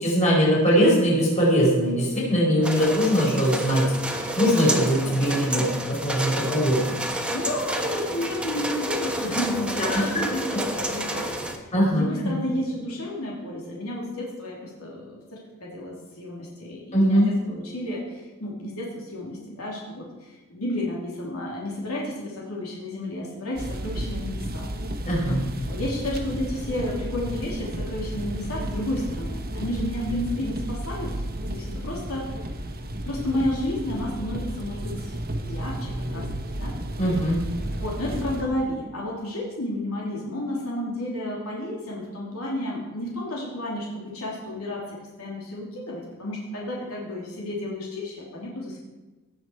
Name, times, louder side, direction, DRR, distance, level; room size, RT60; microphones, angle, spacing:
voice 1, 0.0-7.0 9.8-10.2 11.7-12.4 16.9-17.3 25.0-25.4 37.0-37.4, equal, 35° left, -5 dB, 4.8 m, -21 dB
sound 1, 2.6-11.6, right 1 dB, 5° right, 1.1 m, -30 dB
voice 2, 7.3-11.5 11.9-24.7 25.7-31.1 31.5-32.3 33.0-35.1 35.4-36.7 37.8-48.8, left 1 dB, 90° left, -3 dB, 3.0 m, -31 dB
sound 2, 23.5-38.4, right 1 dB, 45° right, 1.2 m, -32 dB
17.0 x 7.5 x 4.7 m, 1.2 s
head